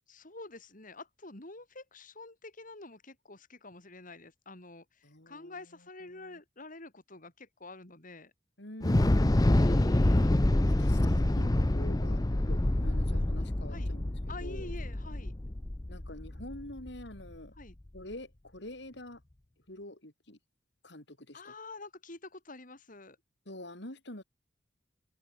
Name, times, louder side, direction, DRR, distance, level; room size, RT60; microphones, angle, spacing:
voice 1, 0.1-8.3 9.5-10.5 13.7-13.9 14.3-15.3 17.5-17.8 21.3-23.2, left 2 dB, 45° left, 4.4 m, -47 dB
voice 2, 5.0-5.6 6.1-6.4 8.6-10.0 10.6-14.1 14.4-14.7 15.9-17.5 17.9-19.2 19.7-20.4 20.8-21.5 23.5-24.2, left 1 dB, 65° left, 5.9 m, -46 dB
Thunder / Explosion, 8.8-17.0, left 1 dB, 20° left, 0.6 m, -27 dB
head